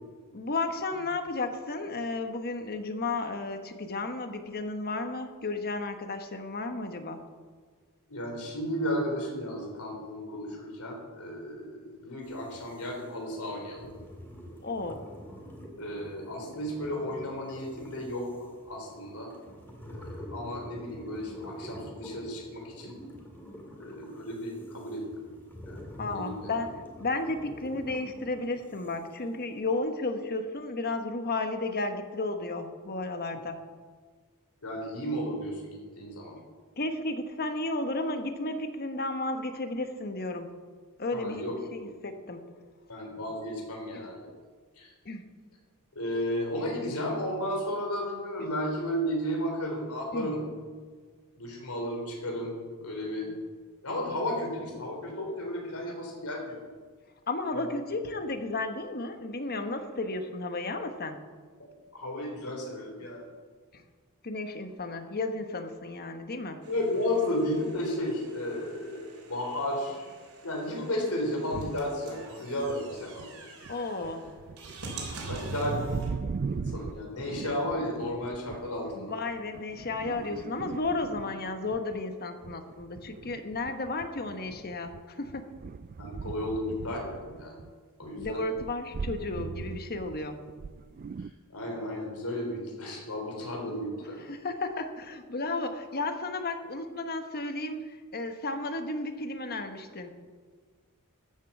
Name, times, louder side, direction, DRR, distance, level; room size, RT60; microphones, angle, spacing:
voice 1, 0.3-7.2 14.6-15.1 26.0-26.7 27.0-33.6 36.8-40.5 41.0-41.4 41.7-42.4 45.0-45.3 50.1-50.3 57.3-61.2 63.7-63.8 64.2-66.6 73.7-74.2 79.0-85.5 88.2-90.4 94.3-100.1, left 2 dB, 45° left, 7 dB, 1.2 m, -33 dB
voice 2, 8.1-13.9 15.8-19.3 19.8-23.0 23.8-25.2 25.6-26.5 34.6-36.3 41.1-41.8 42.9-44.3 44.8-44.9 45.9-50.5 51.3-53.3 53.8-56.6 57.5-57.7 61.6-63.3 66.6-70.1 70.4-73.3 75.3-75.9 76.5-79.2 86.0-87.6 88.0-88.4 91.2-94.2, left 1 dB, 75° left, 1 dB, 3.8 m, -33 dB
sound 1, 12.2-29.8, equal, 10° left, 2.1 m, -47 dB
sound 2, 66.6-76.1, right 3 dB, 70° right, 3.9 m, -47 dB
sound 3, 71.5-72.0 72.6-73.3 73.6-82.0 82.4-87.7 88.0-91.3, right 5 dB, 40° right, 0.3 m, -39 dB
13.5 x 8.2 x 7.3 m, 1.5 s
head